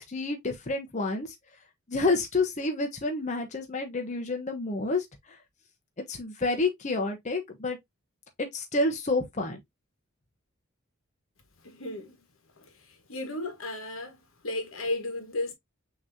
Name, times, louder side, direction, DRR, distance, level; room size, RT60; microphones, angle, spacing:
voice 1, 0.0-1.3 1.9-5.4 6.1-7.8 8.4-9.6, left 3 dB, 35° left, 0.8 m, -29 dB
voice 2, 11.6-12.1 13.1-14.2 14.4-15.5, left 2 dB, 80° left, 1.4 m, -33 dB
6.3 x 3.1 x 2.6 m
head